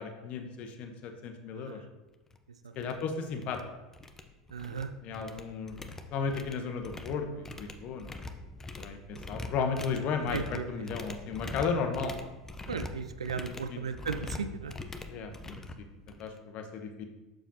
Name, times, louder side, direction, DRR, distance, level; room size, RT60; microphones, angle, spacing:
voice 1, 0.0-1.8 2.8-3.6 5.0-5.8 6.1-8.1 8.8-12.1 13.7-13.8 15.1-15.9 16.2-17.0, left 5 dB, 45° left, 6 dB, 0.9 m, -34 dB
voice 2, 1.5-1.9 2.6-3.0 4.5-4.9 10.3-10.9 12.7-14.7, right 5 dB, 80° right, 9 dB, 0.4 m, -36 dB
sound 1, 2.3-2.4 2.8-3.0 3.3-3.6 3.9-4.9 5.1-16.4, left 2 dB, 15° left, 0.7 m, -43 dB
7.1 x 6.2 x 2.9 m, 1.1 s
figure-of-eight pair, 80°, 3 cm